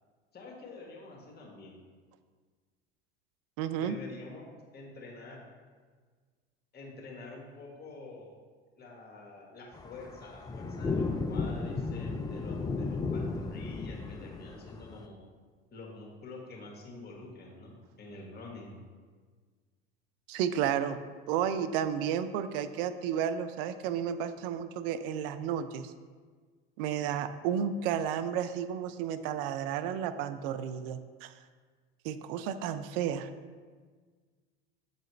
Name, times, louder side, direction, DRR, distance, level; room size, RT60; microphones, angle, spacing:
voice 1, 0.3-1.7 3.8-4.4 4.7-5.4 6.7-8.4 8.7-15.2 15.7-18.8, left 3 dB, 35° left, -1 dB, 1.7 m, -47 dB
voice 2, 3.6-4.0 20.3-21.0 21.3-25.9 26.8-31.3 32.0-33.3, right 9 dB, 65° right, 12 dB, 0.5 m, -32 dB
sound 1, 9.7-15.1, left 4 dB, 15° left, 0.3 m, -34 dB
7.5 x 4.0 x 3.2 m, 1.5 s
hypercardioid pair, 80°, 30 cm